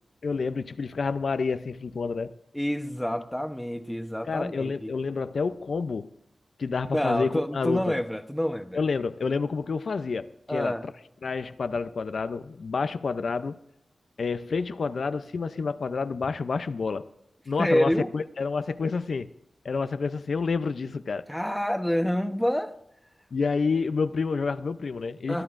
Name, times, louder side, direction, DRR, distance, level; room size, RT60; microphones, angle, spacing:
voice 1, 0.2-2.3 4.3-6.1 6.6-7.9 8.7-10.9 11.2-13.6 14.2-17.0 17.5-19.3 19.6-21.2 23.3-25.4, left 4 dB, 75° left, 0.5 m, -29 dB
voice 2, 2.5-4.9 6.9-8.8 10.5-10.8 17.6-18.1 21.3-22.7 25.3-25.4, equal, 5° left, 0.9 m, -27 dB
26.0 x 11.0 x 2.5 m
wide cardioid pair, 85°, 0 cm